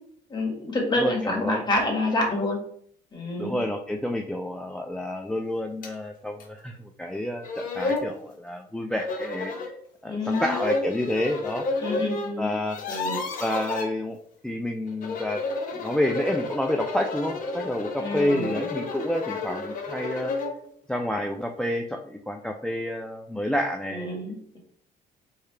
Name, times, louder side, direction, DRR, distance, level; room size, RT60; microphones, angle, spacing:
voice 1, 0.3-2.6 3.1-3.6 10.0-10.6 11.8-12.5 12.9-13.2 18.0-18.5 23.9-24.6, left 2 dB, 25° left, -1 dB, 1.7 m, -27 dB
voice 2, 1.0-1.6 3.4-9.7 10.0-11.6 12.4-12.8 13.4-14.2 14.4-15.4 15.7-20.3 20.9-24.1, left 1 dB, 5° left, 3 dB, 0.3 m, -29 dB
sound 1, 5.8-5.9 6.4-6.5 7.1-7.2 7.4-8.1 9.0-9.7 10.2-12.3 12.6-13.9 14.9-20.6, left 3 dB, 55° left, 1.1 m, -31 dB
4.7 x 3.3 x 3.2 m, 0.64 s
cardioid pair, 110°, 17 cm